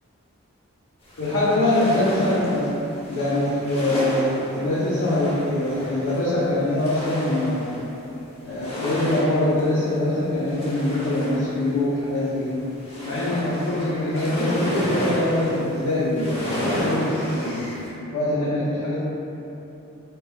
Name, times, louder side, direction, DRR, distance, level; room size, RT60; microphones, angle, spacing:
sound 1, 1.1-8.0 8.4-9.7 10.2-12.3 12.6-15.8 16.2-17.9, equal, 25° left, 0.5 m, -30 dB
voice 1, 1.2-2.8 3.1-7.8 8.4-12.7 13.0-17.8 18.1-19.0, left 1 dB, 85° left, -9 dB, 0.5 m, -23 dB
2.8 x 2.2 x 3.1 m, 3.0 s
head